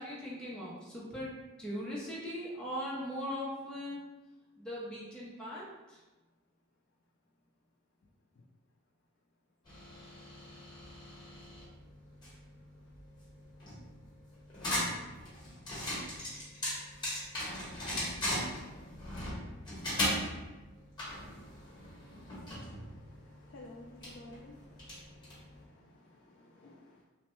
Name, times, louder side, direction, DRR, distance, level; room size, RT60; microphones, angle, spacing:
voice 1, 0.0-1.3 1.6-4.0 4.6-6.0, equal, 5° left, -7 dB, 0.6 m, -39 dB
sound 1, 9.7-25.6, left 1 dB, 20° left, 1.1 m, -39 dB
voice 2, 21.4-27.0, left 2 dB, 55° left, -2 dB, 0.3 m, -55 dB
2.9 x 2.1 x 3.0 m, 1.1 s
head